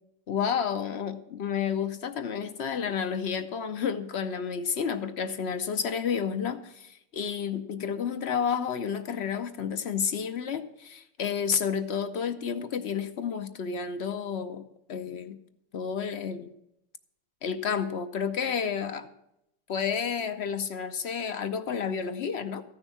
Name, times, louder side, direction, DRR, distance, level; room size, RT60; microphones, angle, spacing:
voice 1, 0.3-14.6 14.9-15.4 15.7-16.5 17.4-19.1 19.7-22.6, left 7 dB, 55° left, 10 dB, 0.8 m, -30 dB
14.5 x 6.3 x 8.5 m, 0.82 s
omnidirectional pair, 1.6 m